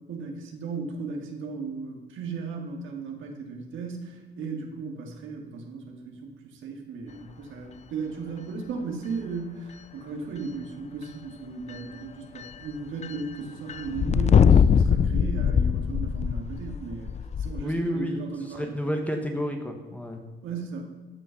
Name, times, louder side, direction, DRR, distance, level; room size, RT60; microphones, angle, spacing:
voice 1, 0.1-18.7 20.4-20.8, right 4 dB, 80° right, 2 dB, 1.9 m, -36 dB
sound 1, 11.7-11.8 12.4-12.7 13.0-13.2 13.7-17.6, left 7 dB, 35° left, 0.4 m, -22 dB
voice 2, 17.6-20.2, equal, 5° left, 3 dB, 1.3 m, -30 dB
14.0 x 5.5 x 5.7 m, 1.2 s
cardioid pair, 90°, 20 cm